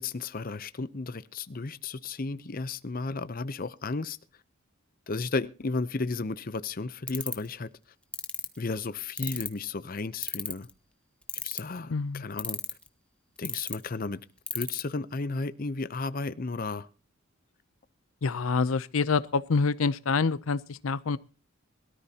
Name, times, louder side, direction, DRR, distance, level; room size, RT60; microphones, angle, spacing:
voice 1, 0.0-4.2 5.1-7.7 8.6-10.7 11.4-12.6 13.4-14.2 14.5-16.9, left 3 dB, 45° left, 0.6 m, -33 dB
sound 1, 7.1-7.5 8.1-8.5 9.2-9.6 10.2-10.7 11.3-11.8 12.4-12.9 13.4-13.7 14.5-14.8, left 2 dB, 5° left, 0.9 m, -31 dB
voice 2, 11.9-12.2 18.2-21.2, left 4 dB, 85° left, 0.6 m, -26 dB
22.0 x 13.5 x 2.8 m
head